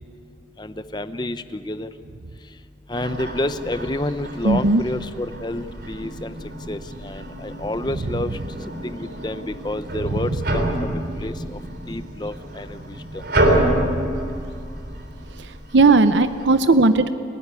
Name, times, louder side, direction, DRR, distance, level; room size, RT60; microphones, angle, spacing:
voice 1, 0.6-1.9 2.9-6.3 6.7-8.3 8.8-11.3 11.9-12.8 13.1-13.2, left 1 dB, 25° left, 11 dB, 0.7 m, -29 dB
sound 1, 2.9-16.5, right 1 dB, 65° right, 3.6 m, -28 dB
voice 2, 4.4-4.8 15.7-17.1, right 3 dB, 85° right, 10 dB, 0.8 m, -16 dB
30.0 x 13.5 x 9.7 m, 2.5 s
head